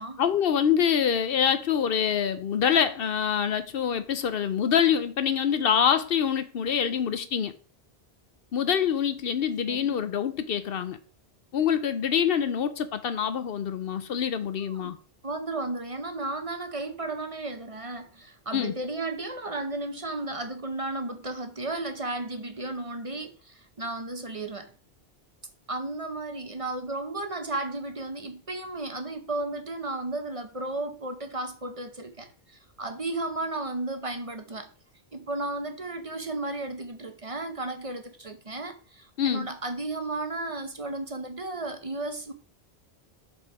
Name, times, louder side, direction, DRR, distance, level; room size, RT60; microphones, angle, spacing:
voice 1, 0.0-7.5 8.5-11.0 11.5-15.0 18.5-18.7 39.2-39.5, left 8 dB, 65° left, 0.8 m, -25 dB
voice 2, 9.6-10.0 14.7-14.9 15.2-24.7 25.7-34.7 35.1-42.3, right 2 dB, 35° right, 0.8 m, -34 dB
7.0 x 4.4 x 4.8 m
omnidirectional pair, 1.1 m